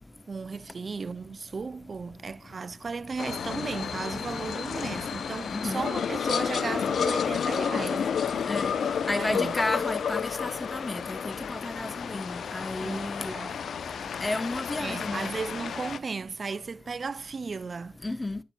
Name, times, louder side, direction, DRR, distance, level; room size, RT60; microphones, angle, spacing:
voice 1, 0.3-8.1 9.2-9.6 12.8-13.6 14.8-18.0, right 4 dB, 50° right, 0.4 m, -35 dB
sound 1, 3.2-16.0, left 7 dB, 70° left, 0.6 m, -31 dB
voice 2, 5.5-5.8 8.5-8.7 9.1-13.3 14.2-15.3 18.0-18.4, left 2 dB, 25° left, 0.9 m, -32 dB
10.0 x 7.2 x 2.3 m
supercardioid pair, 40°, 0 cm